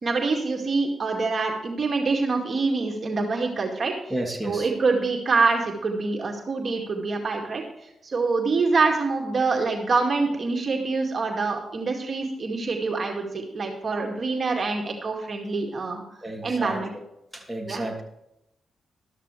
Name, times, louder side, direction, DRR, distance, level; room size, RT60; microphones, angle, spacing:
voice 1, 0.0-4.1 4.4-16.0 16.4-16.9 17.6-17.9, right 4 dB, 50° right, 1 dB, 2.2 m, -25 dB
voice 2, 4.1-4.7 16.2-17.0 17.3-18.0, right 1 dB, 5° right, 0 dB, 2.8 m, -31 dB
13.0 x 12.5 x 3.3 m, 0.84 s
cardioid pair, 60°, 0 cm